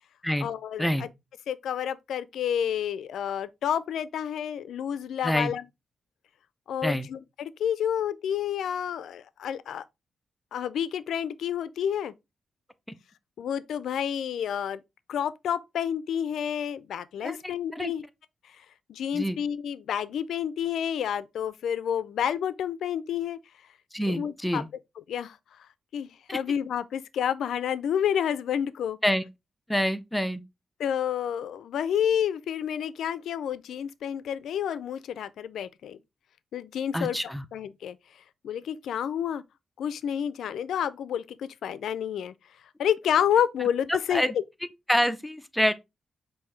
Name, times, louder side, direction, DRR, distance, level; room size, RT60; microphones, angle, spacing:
voice 1, 0.4-1.1 1.5-5.6 6.7-9.8 10.5-12.1 13.4-14.8 15.1-18.0 18.9-23.4 24.1-24.6 25.1-25.4 25.9-29.0 30.8-36.0 36.5-37.2 37.5-38.0 38.4-39.4 39.8-42.3 42.8-44.2, left 9 dB, 90° left, 0.3 m, -29 dB
voice 2, 23.9-24.7 26.3-26.4 29.0-29.2 29.7-30.4 36.9-37.4 43.9-44.3 44.9-45.7, equal, 5° left, 0.5 m, -26 dB
5.5 x 2.6 x 3.2 m
cardioid pair, 85°, 0 cm